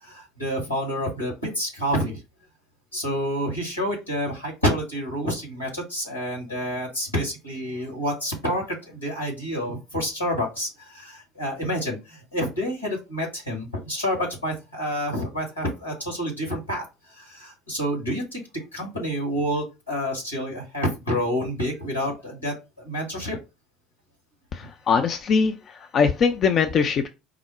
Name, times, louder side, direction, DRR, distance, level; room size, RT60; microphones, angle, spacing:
voice 1, 0.0-2.2 2.9-18.4 18.7-23.4, equal, 85° left, 1.7 m, -28 dB
voice 2, 24.5-27.1, left 6 dB, 40° left, 0.4 m, -22 dB
4.8 x 2.0 x 4.4 m
figure-of-eight pair, 60°, 0 cm